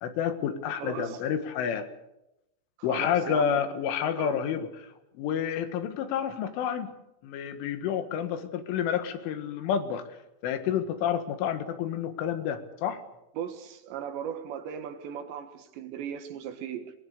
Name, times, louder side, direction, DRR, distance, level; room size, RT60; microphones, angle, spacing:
voice 1, 0.0-1.9 2.8-4.7 5.2-6.9 7.2-10.0 10.4-13.0, left 8 dB, 85° left, 9 dB, 4.1 m, -29 dB
voice 2, 0.8-1.3 2.8-3.6 4.2-4.4 13.4-16.9, right 8 dB, 70° right, 8 dB, 3.6 m, -37 dB
22.5 x 20.5 x 6.8 m, 0.87 s
omnidirectional pair, 5.4 m